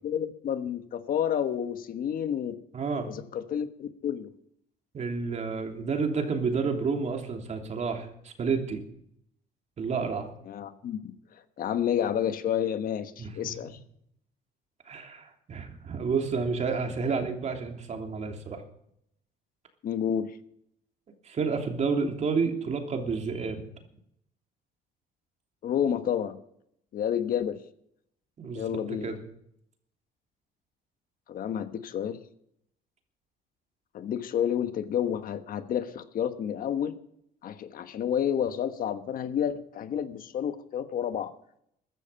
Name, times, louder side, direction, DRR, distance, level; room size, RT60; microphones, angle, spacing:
voice 1, 0.0-2.5 3.1-4.3 10.5-13.8 19.8-20.4 25.6-26.4 26.9-27.6 28.5-29.1 31.3-32.2 33.9-37.0 37.4-41.3, left 9 dB, 55° left, 10 dB, 1.3 m, -30 dB
voice 2, 2.7-3.1 4.9-8.8 9.8-10.3 13.2-13.3 13.6-13.7 14.9-18.6 21.2-23.7 28.4-29.2, right 5 dB, 40° right, 4 dB, 3.1 m, -30 dB
14.5 x 12.5 x 5.7 m, 0.72 s
cardioid pair, 110°, 17 cm